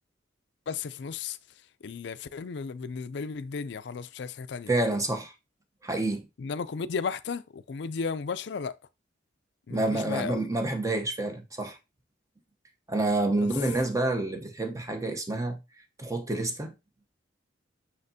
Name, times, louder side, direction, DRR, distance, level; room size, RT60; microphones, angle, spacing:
voice 1, 0.7-1.4 1.8-4.7 6.4-8.8 9.7-10.4 13.3-13.5, left 5 dB, 65° left, 0.4 m, -34 dB
voice 2, 4.7-5.3 5.8-6.3 9.7-11.8 12.9-15.6 16.0-16.7, right 2 dB, 15° right, 0.9 m, -28 dB
6.5 x 5.6 x 2.7 m
head